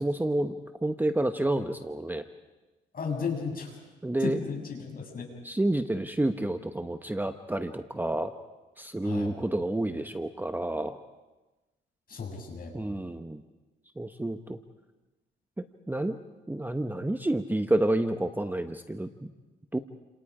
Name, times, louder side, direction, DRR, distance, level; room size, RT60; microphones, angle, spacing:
voice 1, 0.0-2.2 4.0-4.4 5.4-8.3 8.8-11.0 12.7-13.4 14.0-14.6 15.6-16.2 16.5-19.3 19.7-19.8, right 1 dB, 10° right, 8 dB, 1.1 m, -29 dB
voice 2, 2.9-3.7 4.2-5.3 9.0-9.3 12.1-12.7, left 5 dB, 45° left, 1 dB, 7.4 m, -34 dB
29.5 x 27.5 x 5.0 m, 1.1 s
cardioid pair, 90°, 20 cm